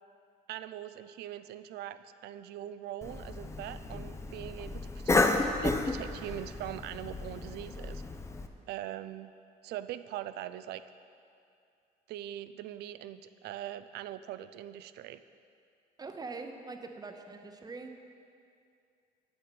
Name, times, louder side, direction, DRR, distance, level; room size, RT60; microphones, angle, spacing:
voice 1, 0.5-8.0 8.7-9.3 9.6-10.8 12.1-15.2, right 12 dB, 75° right, 12 dB, 0.4 m, -42 dB
Cough, 3.0-8.5, left 2 dB, 15° left, 0.5 m, -32 dB
voice 2, 16.0-18.0, right 3 dB, 25° right, 5 dB, 0.7 m, -43 dB
8.1 x 6.7 x 6.0 m, 2.4 s
cardioid pair, 110°, 17 cm